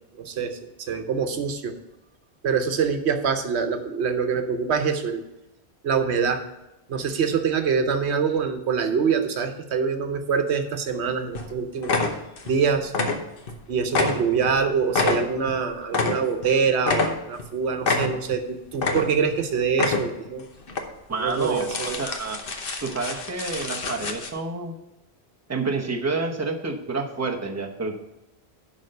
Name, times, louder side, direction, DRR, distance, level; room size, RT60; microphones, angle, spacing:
voice 1, 0.2-1.7 2.4-5.2 5.8-6.4 6.9-12.0 12.4-12.9 13.7-20.5 21.2-22.0, right 6 dB, 80° right, 7 dB, 1.1 m, -25 dB
sound 1, 10.9-11.1 11.4-11.5 11.8-12.6 12.9-13.6 13.9-16.5 16.8-17.5 17.8-18.4 18.7-19.4 19.7-20.3 20.7-20.8 21.3-24.3, left 3 dB, 60° left, 1.1 m, -27 dB
voice 2, 21.1-22.4 22.8-24.7 25.5-28.0, right 3 dB, 15° right, 1 dB, 0.9 m, -29 dB
11.0 x 3.9 x 6.5 m, 0.92 s
omnidirectional pair, 1.1 m